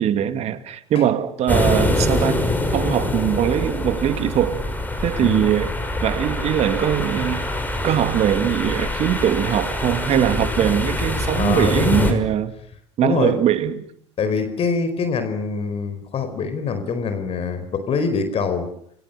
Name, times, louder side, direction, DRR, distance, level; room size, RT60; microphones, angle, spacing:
voice 1, 0.0-2.4 2.7-4.6 5.0-5.7 6.0-7.4 7.8-12.5 13.0-13.8, right 10 dB, 45° right, 2.6 m, -21 dB
sound 1, 1.5-12.1, left 1 dB, 10° left, 6.4 m, -24 dB
voice 2, 11.3-12.2 13.0-13.3 14.2-18.7, left 5 dB, 40° left, 4.7 m, -24 dB
29.5 x 22.5 x 7.0 m
hypercardioid pair, 75°, 15 cm